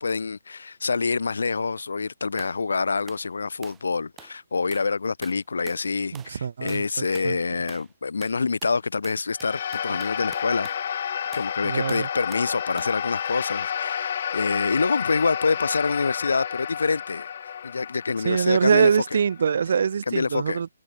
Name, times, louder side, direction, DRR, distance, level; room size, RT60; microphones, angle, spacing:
voice 1, 0.0-11.0 11.3-17.3 17.6-18.9 20.1-20.6, left 4 dB, 85° left, 2.2 m, -26 dB
sound 1, 2.4-2.6 3.1-3.3 3.6-3.9 4.2-4.4 4.7-4.9 5.2-5.9 6.1-6.4 6.7-6.9 7.1-7.3 7.7-7.9 8.2-10.8 11.3-11.5 11.9-12.5 12.8-13.0, right 10 dB, 5° right, 3.0 m, -48 dB
voice 2, 6.1-7.4 11.6-12.1 18.2-20.7, right 7 dB, 40° right, 1.5 m, -23 dB
sound 2, 9.3-19.9, left 8 dB, 35° left, 0.8 m, -31 dB
hypercardioid pair, 180°, 0 cm